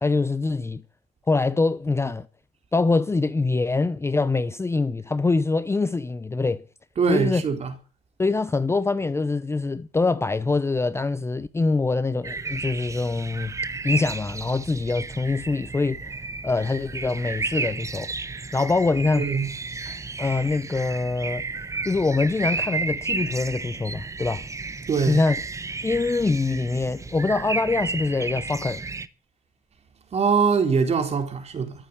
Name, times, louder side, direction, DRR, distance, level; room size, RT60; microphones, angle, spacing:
voice 1, 0.0-0.8 1.3-2.3 2.7-6.6 7.1-7.4 8.2-13.5 13.8-16.2 16.4-18.1 18.5-19.3 20.2-21.5 21.9-24.4 25.1-25.4 25.8-28.8, left 3 dB, 15° left, 0.7 m, -24 dB
voice 2, 7.0-7.7 19.1-19.5 19.9-20.0 24.9-25.2 30.1-31.7, right 5 dB, 40° right, 3.8 m, -23 dB
sound 1, 12.2-29.1, right 3 dB, 20° right, 1.0 m, -32 dB
14.0 x 8.6 x 8.3 m
cardioid pair, 110°, 17 cm